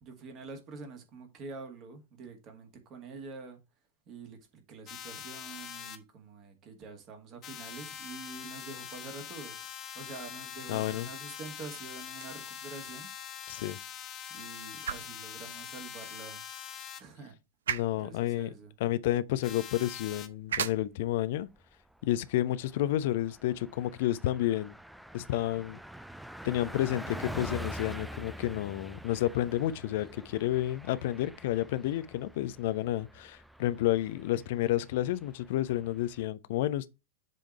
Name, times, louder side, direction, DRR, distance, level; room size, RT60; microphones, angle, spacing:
voice 1, 0.0-3.6 4.1-9.7 9.9-13.1 14.3-16.4 17.0-17.4 17.9-18.7, right 4 dB, 35° right, 2.0 m, -46 dB
sound 1, 4.9-6.0 7.4-17.0 19.4-20.3, left 9 dB, 30° left, 0.9 m, -43 dB
voice 2, 10.7-11.1 13.5-13.8 17.7-18.5 18.8-21.5 22.0-24.7 25.1-25.8 26.4-36.9, left 14 dB, 50° left, 0.5 m, -30 dB
sound 2, 12.0-24.1, right 8 dB, 65° right, 0.6 m, -43 dB
Car passing by, 20.8-21.2 21.6-21.7 22.0-36.3, equal, ahead, 0.4 m, -46 dB
7.6 x 3.7 x 4.6 m
figure-of-eight pair, 90°, 0 cm